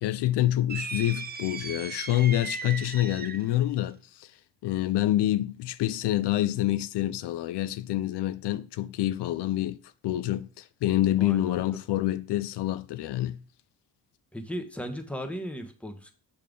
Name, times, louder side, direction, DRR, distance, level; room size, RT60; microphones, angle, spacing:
voice 1, 0.0-4.3 4.6-9.8 10.0-13.4, left 14 dB, 85° left, 0.5 m, -27 dB
sound 1, 0.7-3.6, right 5 dB, 25° right, 0.4 m, -37 dB
voice 2, 14.3-16.1, equal, 5° left, 1.0 m, -36 dB
6.6 x 5.3 x 3.7 m
cardioid pair, 95°, 40 cm